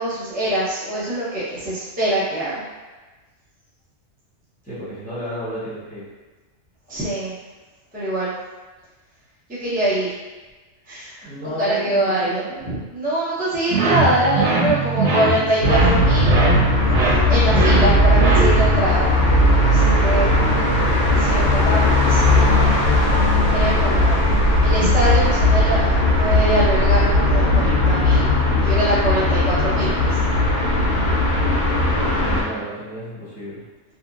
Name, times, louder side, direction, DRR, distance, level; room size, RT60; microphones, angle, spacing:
voice 1, 0.0-2.6 6.9-7.3 7.9-8.3 9.5-10.1 10.9-11.3 11.6-16.3 17.3-20.3 21.2-23.0 23.5-24.2 24.6-28.3 28.6-30.1, right 1 dB, 10° right, -10 dB, 0.6 m, -23 dB
voice 2, 4.6-6.0 11.2-12.6 19.8-20.9 31.9-33.6, equal, 5° left, -13 dB, 1.2 m, -32 dB
sound 1, 13.7-18.8, right 2 dB, 90° right, 1.1 m, -21 dB
sound 2, 15.6-32.4, left 1 dB, 50° left, 0.7 m, -17 dB
2.9 x 2.4 x 2.5 m, 1.2 s
omnidirectional pair, 1.3 m